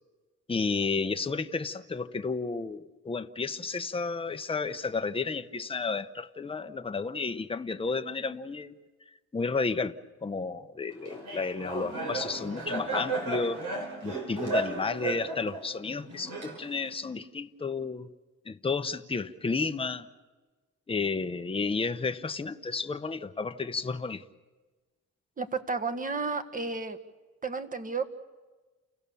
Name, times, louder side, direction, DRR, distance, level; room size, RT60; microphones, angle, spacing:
voice 1, 0.5-8.7 9.3-9.9 10.2-13.6 14.0-18.1 18.5-20.1 20.9-24.3, left 4 dB, 20° left, 8 dB, 0.9 m, -32 dB
Laughter, 11.1-16.9, right 2 dB, 80° right, 5.4 m, -34 dB
voice 2, 25.4-27.0 27.4-28.1, right 4 dB, 25° right, 7 dB, 1.6 m, -32 dB
29.5 x 16.5 x 7.0 m, 1.3 s
cardioid pair, 90°, 30 cm